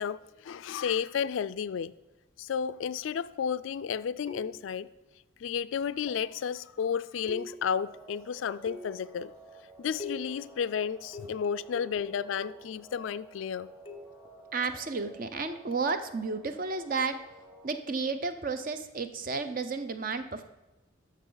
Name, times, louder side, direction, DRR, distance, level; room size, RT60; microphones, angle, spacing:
voice 1, 0.0-1.9 2.4-4.9 5.4-9.3 9.8-13.7, left 7 dB, 75° left, 0.3 m, -32 dB
sound 1, 4.3-4.8 6.1-6.4 7.3-7.9 8.7-9.2 10.0-10.5 11.1-12.8 13.9-14.3 15.7-15.9, left 2 dB, 25° left, 0.6 m, -44 dB
sound 2, 7.7-17.8, right 2 dB, 5° right, 1.2 m, -53 dB
voice 2, 14.5-17.2 17.6-20.4, right 4 dB, 45° right, 0.6 m, -32 dB
12.0 x 6.6 x 3.9 m
head